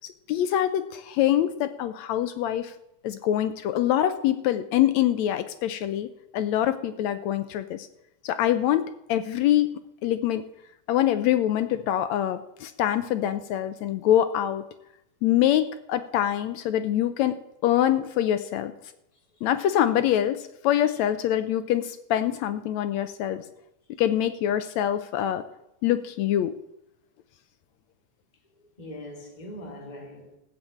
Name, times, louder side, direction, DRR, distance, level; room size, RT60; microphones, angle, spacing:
voice 1, 0.3-2.7 3.0-7.9 8.2-10.4 10.9-14.6 15.2-18.7 19.4-23.5 24.0-25.4 25.8-26.6, left 11 dB, 80° left, 1.7 m, -25 dB
voice 2, 19.1-19.5 28.6-30.4, left 1 dB, 15° left, 2.2 m, -42 dB
14.0 x 7.7 x 8.6 m
omnidirectional pair, 3.7 m